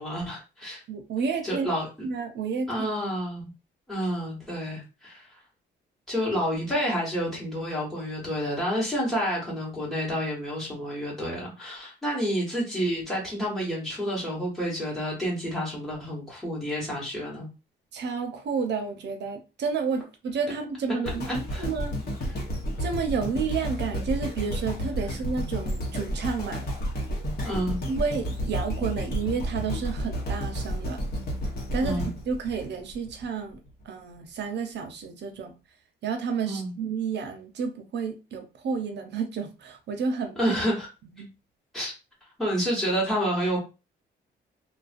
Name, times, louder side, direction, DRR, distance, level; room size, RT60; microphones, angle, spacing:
voice 1, 0.0-0.8 1.4-1.9 2.7-3.5 3.9-5.4 6.1-17.5 21.2-21.7 27.4-27.8 31.8-32.1 36.4-36.7 40.4-40.9 41.7-41.9 42.4-43.6, equal, ahead, 1.1 m, -29 dB
voice 2, 0.9-1.7 2.0-2.9 17.9-21.2 21.6-22.0 22.8-26.7 27.9-31.0 31.7-35.6 36.0-40.4 41.2-41.3, right 5 dB, 60° right, 0.6 m, -31 dB
sound 1, 21.1-33.3 33.8-33.9, equal, 50° left, 0.9 m, -31 dB
2.4 x 2.2 x 2.5 m
cardioid pair, 90°, 20 cm